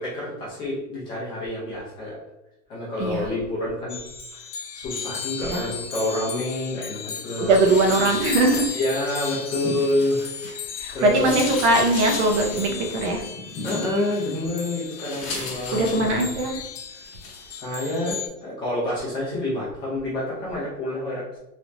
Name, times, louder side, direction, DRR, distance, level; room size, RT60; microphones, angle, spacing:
voice 1, 0.0-2.2 2.7-4.0 4.3-4.5 4.7-7.6 8.7-11.3 13.6-16.3 16.9-17.1 17.5-21.4, left 1 dB, 10° left, -8 dB, 0.5 m, -28 dB
sound 1, 3.9-18.3, left 7 dB, 65° left, 0.8 m, -35 dB
voice 2, 7.4-8.7 10.8-13.2 15.7-16.6, right 2 dB, 45° right, 1 dB, 0.8 m, -21 dB
sound 2, 7.5-10.7 11.0-16.7 17.0-17.5, left 2 dB, 35° left, 1.0 m, -37 dB
3.4 x 2.9 x 2.5 m, 0.92 s
supercardioid pair, 165°, 47 cm